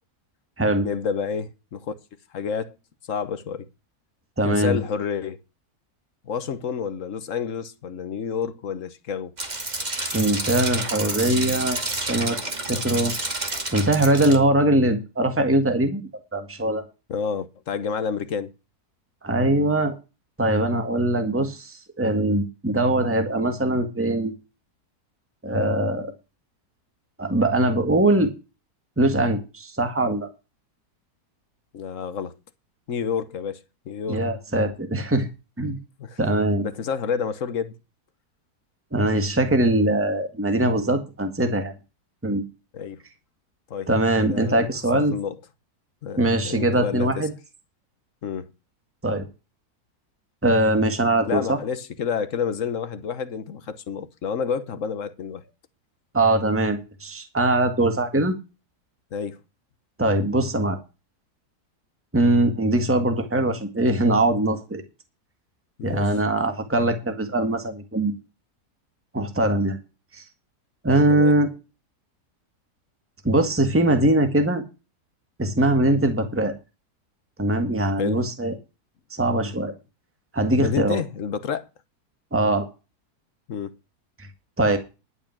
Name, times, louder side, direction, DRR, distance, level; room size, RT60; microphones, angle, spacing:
voice 1, 0.8-1.9 2.3-2.7 3.1-3.7 4.5-5.4 6.2-9.3 17.1-18.5 31.7-32.4 32.9-34.2 36.0-36.2 36.6-37.8 42.7-43.0 43.7-44.7 44.9-45.4 46.0-47.3 48.2-48.5 51.3-55.4 59.1-59.4 65.8-66.1 71.1-71.3 78.0-78.2 80.6-81.7 83.5-83.7, left 6 dB, 55° left, 1.3 m, -29 dB
voice 2, 4.4-4.8 10.1-12.4 12.7-13.1 13.7-16.8 19.2-19.9 20.4-24.3 25.4-26.1 27.2-28.3 29.0-30.3 34.1-35.3 35.6-35.8 36.2-36.6 38.9-41.8 42.2-42.4 43.9-45.1 46.2-47.3 49.0-49.3 50.4-51.6 56.1-58.3 60.0-60.8 62.1-64.8 65.8-68.2 69.1-69.8 70.1-70.2 70.8-71.5 73.2-74.6 75.4-76.5 77.4-78.5 79.1-79.7 80.3-81.0 82.3-82.7 84.6-84.8, right 1 dB, 10° right, 1.8 m, -22 dB
sound 1, 9.4-14.4, right 2 dB, 25° right, 2.3 m, -29 dB
11.5 x 8.9 x 5.8 m
omnidirectional pair, 1.7 m